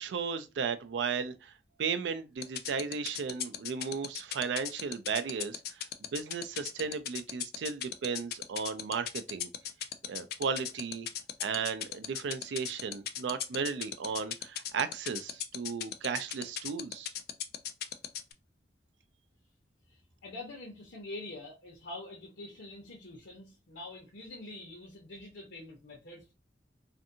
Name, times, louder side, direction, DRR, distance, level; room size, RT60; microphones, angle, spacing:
voice 1, 0.0-1.5 1.8-5.8 6.1-9.5 10.1-11.1 11.4-17.1, right 5 dB, 85° right, 0.4 m, -35 dB
sound 1, 2.4-18.3, left 11 dB, 55° left, 0.3 m, -36 dB
voice 2, 19.9-26.3, left 2 dB, 85° left, 0.8 m, -45 dB
2.6 x 2.5 x 2.6 m
head